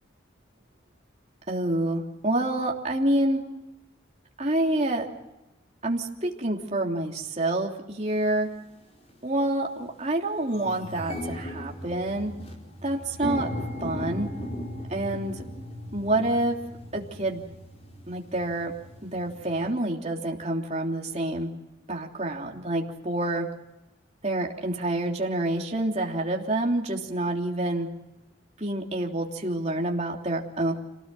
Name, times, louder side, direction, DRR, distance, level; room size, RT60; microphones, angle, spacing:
voice 1, 1.5-3.4 4.4-5.1 5.8-8.5 9.2-12.3 12.8-13.5 13.8-14.3 14.9-15.4 15.9-16.6 16.9-17.4 18.1-18.7 19.0-21.5 21.9-23.5 24.2-27.9 28.6-30.7, right 1 dB, 35° right, 0 dB, 3.2 m, -27 dB
sound 1, 8.1-8.2 9.0-9.2 9.6-9.7 10.0-19.7, left 1 dB, 30° left, 4.7 m, -37 dB
27.5 x 18.5 x 7.7 m, 0.99 s
head